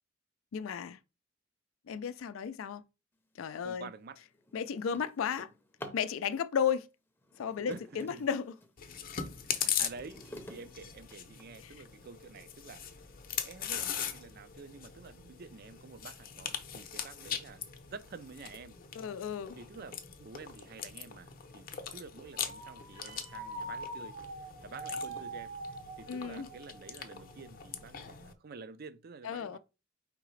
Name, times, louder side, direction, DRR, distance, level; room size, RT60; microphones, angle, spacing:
voice 1, 0.5-1.0 1.9-2.8 3.4-3.9 4.5-5.5 5.9-6.9 7.4-8.6 11.6-11.7 19.0-19.6 26.1-26.5 29.2-29.6, left 7 dB, 90° left, 0.4 m, -34 dB
voice 2, 3.6-4.2 7.7-8.2 9.4-12.8 13.3-18.8 19.6-25.5 26.0-29.6, right 4 dB, 50° right, 0.4 m, -49 dB
Drawer open or close, 4.1-6.1 7.2-8.8 9.3-11.7 12.4-12.5 13.0-13.1 13.4-13.8, equal, 10° left, 0.6 m, -51 dB
Chewing mastication, 8.8-28.3, left 8 dB, 45° left, 0.7 m, -41 dB
sound 1, 22.3-27.8, right 1 dB, 70° right, 1.2 m, -44 dB
4.8 x 3.5 x 3.2 m
head